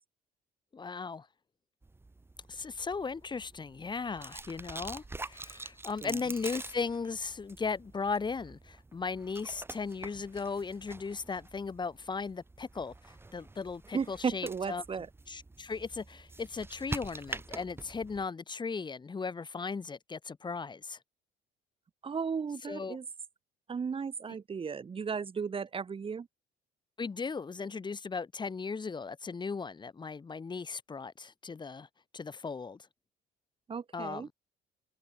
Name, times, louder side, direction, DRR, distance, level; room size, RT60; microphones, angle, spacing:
voice 1, 0.7-1.3 2.5-14.8 15.3-21.0 22.6-23.0 27.0-31.9 32.1-32.9 33.9-34.3, left 4 dB, 25° left, 3.9 m, -37 dB
sound 1, 1.8-18.3, right 2 dB, 15° right, 1.6 m, -46 dB
voice 2, 13.9-15.1 22.0-23.0 23.7-26.3 33.7-34.3, right 6 dB, 35° right, 3.0 m, -35 dB
cardioid pair, 110°, 17 cm